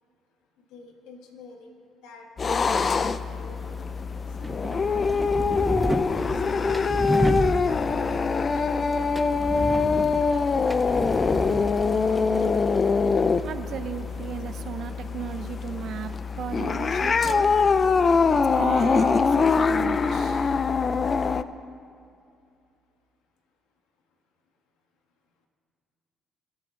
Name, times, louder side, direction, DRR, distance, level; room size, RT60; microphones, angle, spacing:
voice 1, 0.7-3.8 4.4-5.5 6.1-6.2 6.5-6.8 7.8-8.6, left 4 dB, 80° left, 3 dB, 1.6 m, -47 dB
sound 1, 2.4-21.4, left 5 dB, 40° left, 0.5 m, -24 dB
sound 2, 3.6-14.6, right 1 dB, 10° right, 0.5 m, -33 dB
Gurgling / Toilet flush, 5.0-14.4 14.9-15.0, equal, 10° left, 1.5 m, -45 dB
voice 2, 13.4-17.5 18.3-20.7, right 8 dB, 65° right, 10 dB, 0.6 m, -35 dB
22.0 x 8.4 x 3.8 m, 2.4 s
supercardioid pair, 65°, 0 cm